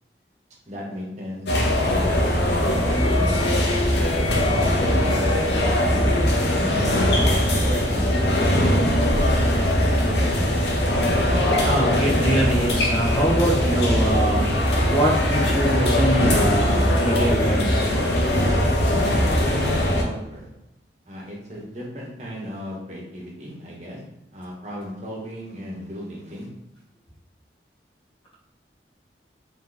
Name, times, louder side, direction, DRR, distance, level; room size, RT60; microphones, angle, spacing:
voice 1, 0.7-1.5 1.8-3.8 4.6-7.4 7.7-8.6 18.8-20.5 21.1-26.5, equal, 40° right, -3 dB, 1.0 m, -35 dB
sound 1, 1.5-20.0, left 1 dB, 65° left, 0.7 m, -20 dB
voice 2, 11.6-14.5 14.9-17.9, right 1 dB, 30° left, -5 dB, 1.1 m, -24 dB
3.0 x 2.8 x 3.9 m, 0.91 s
head